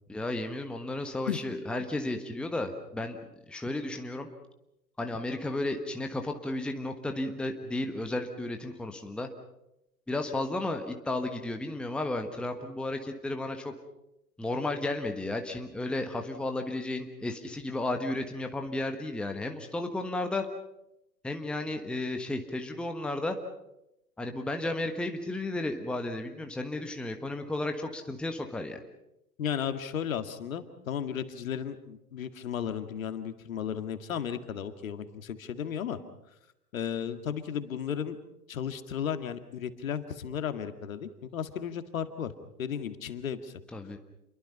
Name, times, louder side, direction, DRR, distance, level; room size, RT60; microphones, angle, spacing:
voice 1, 0.1-3.2 3.5-4.3 5.0-9.3 10.1-13.7 14.4-20.5 21.2-23.4 24.2-28.8 43.7-44.0, left 2 dB, ahead, 5 dB, 1.3 m, -33 dB
voice 2, 29.4-36.0 36.7-38.2 38.5-42.3 42.6-43.6, left 8 dB, 55° left, 9 dB, 2.0 m, -34 dB
28.5 x 22.5 x 5.6 m, 0.87 s
figure-of-eight pair, 110°, 47 cm